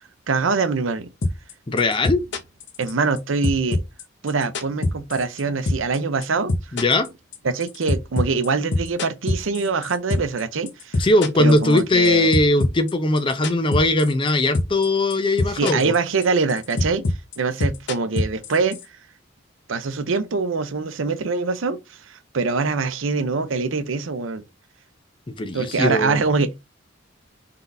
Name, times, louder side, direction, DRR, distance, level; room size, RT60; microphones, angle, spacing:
voice 1, 0.3-1.1 2.8-3.8 4.2-6.5 7.4-11.1 11.4-12.3 15.5-17.1 17.4-18.8 19.7-24.4 25.5-26.6, right 4 dB, 75° right, 0.6 m, -24 dB
sound 1, 1.2-1.5 1.8-3.2 3.4-5.4 5.7-6.0 6.2-10.4 10.7-12.1 12.3-14.3 14.5-14.8 15.1-18.8, left 2 dB, 60° left, 0.8 m, -23 dB
voice 2, 1.7-2.2 6.7-7.1 11.0-15.9 25.3-26.2, left 2 dB, 25° left, 0.5 m, -20 dB
3.9 x 3.7 x 2.6 m
head